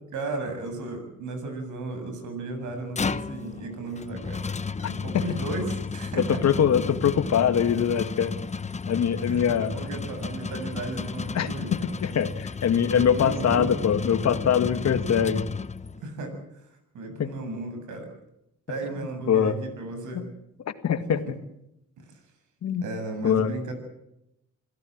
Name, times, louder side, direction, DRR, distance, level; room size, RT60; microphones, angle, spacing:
voice 1, 0.1-4.5 4.8-6.4 9.2-11.9 12.9-13.8 16.0-16.4 16.9-18.1 18.7-20.3 21.1-21.4 22.8-23.7, right 2 dB, 75° right, 7 dB, 7.6 m, -35 dB
sound 1, 2.6-16.1, left 5 dB, 25° left, 0.9 m, -33 dB
voice 2, 4.8-5.3 6.4-8.3 8.9-9.7 11.3-11.5 12.0-15.4 17.2-17.3 19.3-19.6 20.1-20.3 20.8-21.2 22.6-22.8 23.2-23.5, left 8 dB, 60° left, 9 dB, 2.1 m, -23 dB
27.5 x 16.5 x 7.6 m, 0.83 s
cardioid pair, 90°, 30 cm